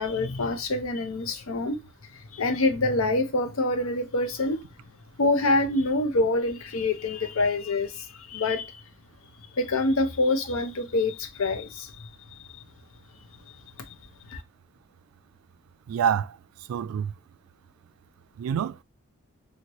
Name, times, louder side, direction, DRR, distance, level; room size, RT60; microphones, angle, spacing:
voice 1, 0.0-1.8 2.1-4.6 5.2-8.8 9.5-12.4 14.3-14.4, left 2 dB, 85° left, 0.6 m, -26 dB
voice 2, 15.9-16.4 16.7-17.1 18.4-18.8, right 8 dB, 90° right, 0.3 m, -26 dB
3.0 x 2.8 x 2.9 m
head